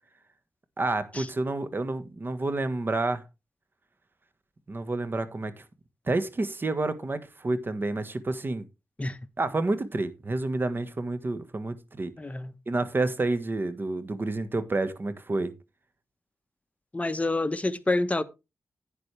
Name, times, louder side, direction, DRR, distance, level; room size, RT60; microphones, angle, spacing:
voice 1, 0.8-3.2 4.7-5.6 6.1-8.7 9.4-12.1 12.7-15.5, right 2 dB, 40° right, 1.5 m, -29 dB
voice 2, 12.2-12.5 16.9-18.2, left 2 dB, 25° left, 1.1 m, -27 dB
11.0 x 9.2 x 3.4 m
cardioid pair, 60°, 5 cm